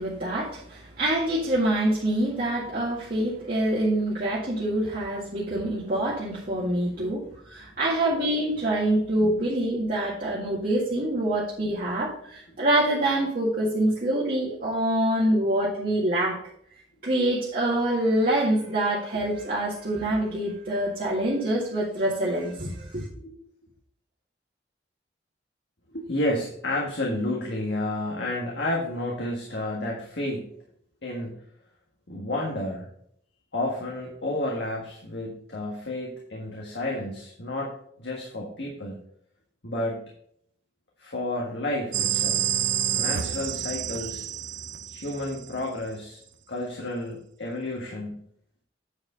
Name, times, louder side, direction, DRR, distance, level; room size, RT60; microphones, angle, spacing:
voice 1, 0.0-16.4 17.0-23.0, right 1 dB, 50° right, -8 dB, 2.0 m, -25 dB
voice 2, 25.9-30.5 31.0-31.4 32.1-32.9 33.5-39.0 39.6-40.0 41.0-42.5 42.9-44.3 44.9-46.2 46.5-48.2, left 1 dB, 70° left, -2 dB, 1.7 m, -31 dB
sound 1, 41.9-45.6, right 10 dB, 90° right, 0.7 m, -28 dB
9.3 x 4.9 x 5.0 m, 0.67 s
head